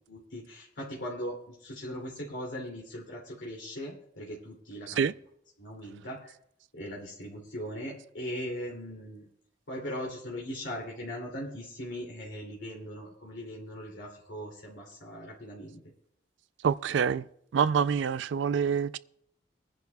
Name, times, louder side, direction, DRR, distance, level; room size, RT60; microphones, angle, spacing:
voice 1, 0.1-5.0 5.6-6.3 6.7-9.3 9.7-15.8, equal, 80° left, 2.6 m, -39 dB
voice 2, 16.6-17.3 17.5-19.0, right 7 dB, 70° right, 0.3 m, -26 dB
22.0 x 10.5 x 2.3 m
head